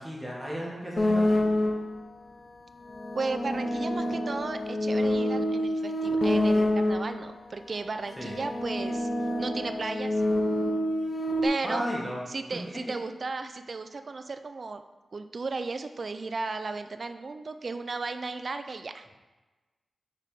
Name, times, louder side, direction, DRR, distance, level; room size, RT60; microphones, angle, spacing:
voice 1, 0.0-1.5 8.2-8.4 11.6-12.2, equal, 5° right, -5 dB, 1.9 m, -34 dB
sound 1, 1.0-2.0 2.8-7.3 8.1-11.5, left 1 dB, 45° left, 0.7 m, -27 dB
voice 2, 3.1-9.1 9.4-10.2 11.4-11.9 12.3-14.8 15.1-19.0, right 3 dB, 55° right, 9 dB, 0.4 m, -35 dB
4.8 x 4.7 x 5.0 m, 1.2 s
cardioid pair, 75°, 0 cm